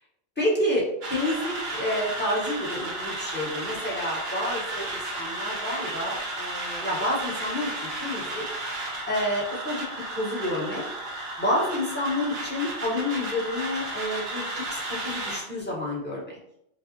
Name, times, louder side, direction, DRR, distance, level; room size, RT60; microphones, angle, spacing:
voice 1, 0.4-8.4 9.1-9.8 10.2-10.8 11.4-16.3, left 1 dB, 10° left, -6 dB, 1.3 m, -29 dB
sound 1, 1.0-15.4, right 2 dB, 60° right, 1.0 m, -33 dB
5.4 x 2.3 x 2.9 m, 0.78 s
omnidirectional pair, 1.2 m